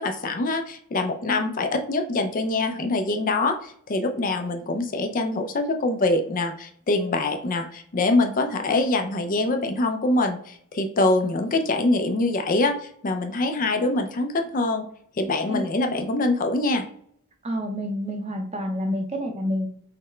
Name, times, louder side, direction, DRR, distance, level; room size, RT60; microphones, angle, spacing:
voice 1, 0.0-14.8 15.2-16.8, left 2 dB, 40° left, 6 dB, 0.4 m, -24 dB
voice 2, 17.4-19.7, equal, 30° right, 4 dB, 0.6 m, -28 dB
5.7 x 2.1 x 3.1 m, 0.64 s
head